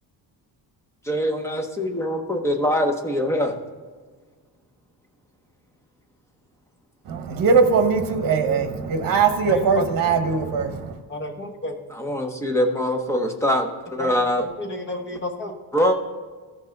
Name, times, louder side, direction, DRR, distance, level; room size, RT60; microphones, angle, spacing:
voice 1, 1.1-3.6 11.9-14.5 15.7-16.0, equal, 5° left, 3 dB, 0.8 m, -23 dB
voice 2, 7.1-10.9, right 5 dB, 55° right, 7 dB, 1.2 m, -20 dB
voice 3, 9.5-10.1 11.1-11.8 14.0-15.5, left 1 dB, 25° left, 3 dB, 1.2 m, -31 dB
14.5 x 5.4 x 3.8 m, 1.4 s
cardioid pair, 175°, 41 cm